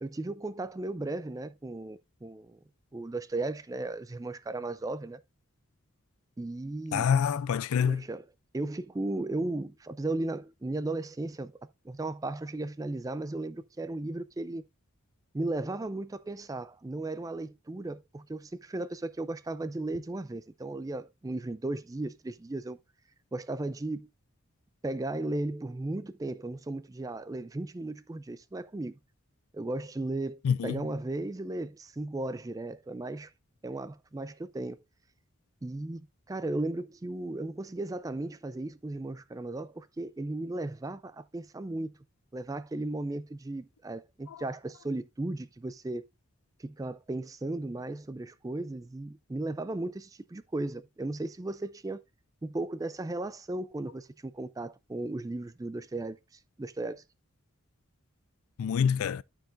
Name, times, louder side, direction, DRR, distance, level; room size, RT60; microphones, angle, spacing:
voice 1, 0.0-2.6 2.9-5.2 6.4-7.1 7.8-8.3 8.5-11.6 11.8-14.6 15.3-22.8 23.3-24.1 24.8-29.0 29.5-33.3 33.6-34.8 35.6-41.9 42.3-46.0 46.6-52.0 52.4-57.0, right 2 dB, 15° right, 0.3 m, -36 dB
voice 2, 6.9-8.0 30.4-30.8 58.6-59.2, left 7 dB, 85° left, 0.4 m, -26 dB
13.0 x 4.6 x 2.5 m
head